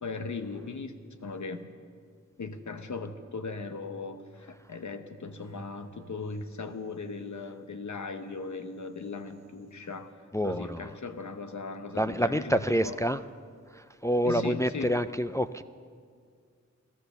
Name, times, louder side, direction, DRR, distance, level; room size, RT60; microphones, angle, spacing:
voice 1, 0.0-0.9 1.2-1.7 2.4-10.1 10.4-13.0 14.2-15.0, left 4 dB, 70° left, 8 dB, 1.0 m, -38 dB
sound 1, 5.4-7.3 8.3-9.8, right 4 dB, 60° right, 1.3 m, -55 dB
voice 2, 10.3-10.8 12.0-13.2 14.0-15.6, equal, 10° left, 10 dB, 0.3 m, -27 dB
14.5 x 14.5 x 6.8 m, 2.1 s
wide cardioid pair, 85°, 30 cm